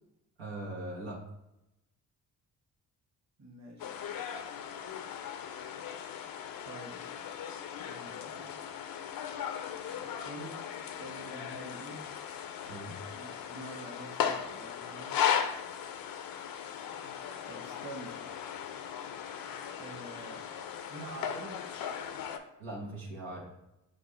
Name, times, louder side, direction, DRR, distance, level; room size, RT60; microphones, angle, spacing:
voice 1, 0.4-1.2 12.7-13.0 22.6-23.5, right 1 dB, 80° right, -3 dB, 1.0 m, -40 dB
voice 2, 3.4-4.2 6.6-7.0 7.8-8.6 9.9-12.2 13.1-15.2 17.5-18.2 19.4-20.4 20.9-21.6, right 2 dB, 35° right, 1 dB, 1.1 m, -47 dB
sound 1, 3.8-22.4, left 8 dB, 50° left, 0.5 m, -37 dB
5.9 x 2.3 x 3.2 m, 0.88 s
hypercardioid pair, 40°, 46 cm